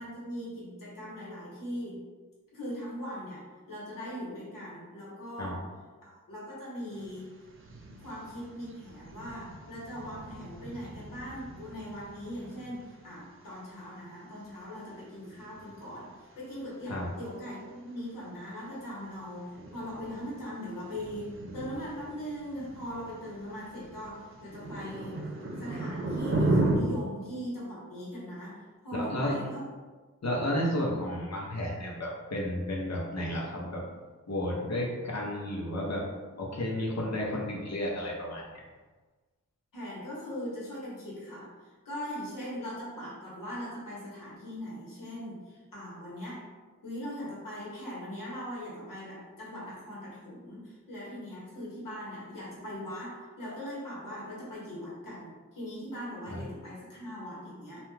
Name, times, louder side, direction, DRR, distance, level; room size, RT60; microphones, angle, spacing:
voice 1, 0.0-2.0 2.5-5.7 6.0-7.3 8.0-25.3 25.6-29.6 39.7-46.5 46.8-57.8, equal, 85° left, -6 dB, 1.1 m, -40 dB
sound 1, 6.9-26.8, right 2 dB, 40° right, 0.4 m, -37 dB
voice 2, 28.9-29.4 30.2-33.9 34.3-36.1 36.4-38.6 56.3-56.4, left 1 dB, 55° left, -3 dB, 0.8 m, -32 dB
2.4 x 2.2 x 3.2 m, 1.3 s
wide cardioid pair, 70°, 32 cm